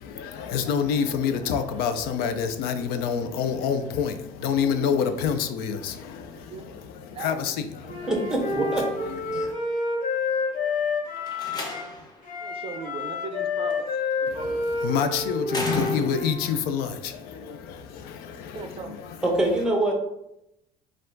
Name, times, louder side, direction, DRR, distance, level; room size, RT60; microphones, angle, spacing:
voice 1, 0.0-8.1 8.5-9.5 14.3-19.6, left 7 dB, 75° left, 9 dB, 0.5 m, -28 dB
voice 2, 7.1-7.5 12.4-13.9 14.3-15.0 18.5-19.0, right 4 dB, 35° right, 6 dB, 0.5 m, -38 dB
Wind instrument woodwind instrument, 7.8-11.9 12.2-16.5, left 3 dB, 55° left, 1.2 m, -29 dB
voice 3, 8.1-8.9 9.3-9.5 19.2-19.9, right 2 dB, 5° right, 1 dB, 0.8 m, -24 dB
Slam, 11.2-12.2 13.7-14.1 15.5-16.5, left 4 dB, 25° left, 0.8 m, -32 dB
4.4 x 2.4 x 3.8 m, 0.84 s
cardioid pair, 135°, 16 cm